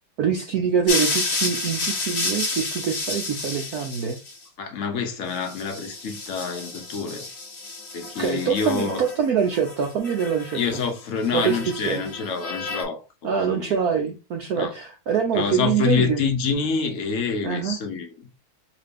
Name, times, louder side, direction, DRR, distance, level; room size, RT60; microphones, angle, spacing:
voice 1, 0.2-4.2 8.2-10.8 11.3-12.1 13.2-16.2 17.4-17.8, right 7 dB, 70° right, 0.9 m, -24 dB
sound 1, 0.9-4.4 5.3-9.2 9.4-10.9 11.2-12.8, left 3 dB, 35° left, 1.1 m, -31 dB
voice 2, 4.6-7.3 7.9-9.0 10.5-13.7 14.6-14.7 15.3-18.1, left 5 dB, 70° left, 0.7 m, -27 dB
4.9 x 2.6 x 3.5 m
omnidirectional pair, 2.3 m